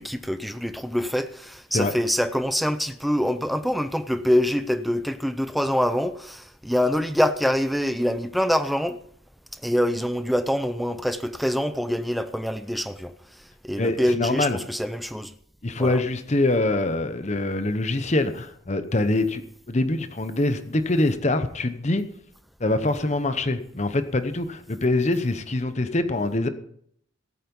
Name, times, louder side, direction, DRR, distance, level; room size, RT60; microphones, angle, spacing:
voice 1, 0.0-9.0 9.5-15.3 15.8-16.0, equal, ahead, 0.5 m, -25 dB
voice 2, 13.8-14.6 15.6-19.4 19.7-22.0 22.6-26.5, left 2 dB, 35° left, 0.8 m, -24 dB
16.5 x 9.2 x 5.4 m
head